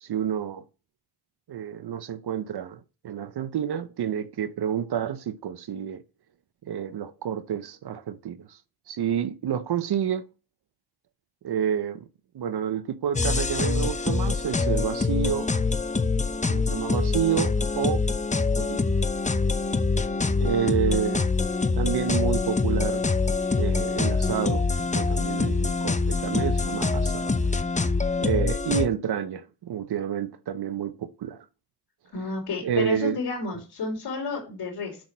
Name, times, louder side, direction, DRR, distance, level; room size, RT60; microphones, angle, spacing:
voice 1, 0.0-0.6 1.5-6.0 6.6-8.6 8.9-10.2 11.4-12.1 12.3-15.5 16.5-18.0 18.6-18.8 20.4-21.3 21.7-23.0 23.5-24.7 24.9-27.5 28.2-31.4 32.6-33.2, right 9 dB, 75° right, 0.8 m, -29 dB
sound 1, 13.1-28.9, left 4 dB, 20° left, 0.7 m, -25 dB
voice 2, 32.1-35.0, left 3 dB, 85° left, 3.5 m, -31 dB
6.4 x 6.0 x 6.0 m
cardioid pair, 55°, 39 cm